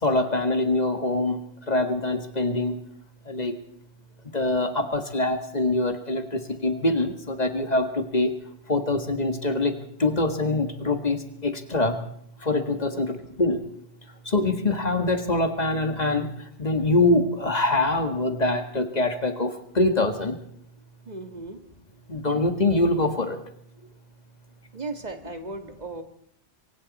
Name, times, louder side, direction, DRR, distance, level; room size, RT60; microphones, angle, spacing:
voice 1, 0.0-2.8 3.3-3.6 4.3-8.4 8.7-12.0 12.4-13.6 14.3-16.3 16.6-20.4 22.1-23.4, left 2 dB, 35° left, 6 dB, 1.9 m, -24 dB
voice 2, 21.1-21.6 24.7-26.0, right 3 dB, 40° right, 6 dB, 1.9 m, -36 dB
28.0 x 23.0 x 4.2 m, 0.67 s
omnidirectional pair, 1.2 m